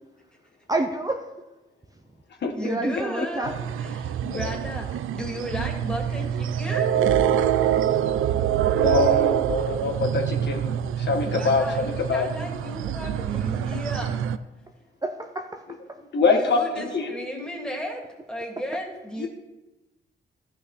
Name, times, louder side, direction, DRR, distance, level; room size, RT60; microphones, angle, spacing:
voice 1, 0.7-1.3 2.6-3.5 15.0-15.6, right 2 dB, 15° right, 3 dB, 0.8 m, -28 dB
voice 2, 2.6-3.5 3.8-6.9 9.6-9.8 11.2-14.1 16.3-18.0 18.3-19.3, equal, 5° left, 0 dB, 2.6 m, -34 dB
sound 1, 3.4-14.4, right 10 dB, 75° right, 0.5 m, -25 dB
voice 3, 8.8-11.6 12.1-12.3 16.1-17.1 19.2-19.3, left 4 dB, 55° left, 3 dB, 1.5 m, -24 dB
13.0 x 5.7 x 4.2 m, 1.0 s
cardioid pair, 70°, 21 cm